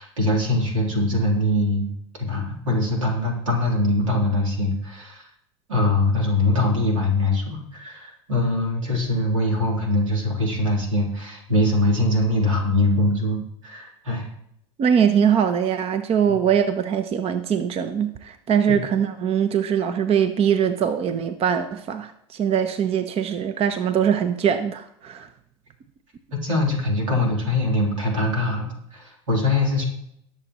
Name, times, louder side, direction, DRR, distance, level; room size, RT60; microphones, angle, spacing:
voice 1, 0.0-1.9 2.2-5.3 5.7-14.3 16.3-16.4 18.7-18.8 26.4-29.8, left 1 dB, 90° right, -1 dB, 3.5 m, -22 dB
voice 2, 14.8-25.3, right 8 dB, 40° right, 10 dB, 0.8 m, -22 dB
19.5 x 7.0 x 3.1 m, 0.75 s
hypercardioid pair, 85°, 16 cm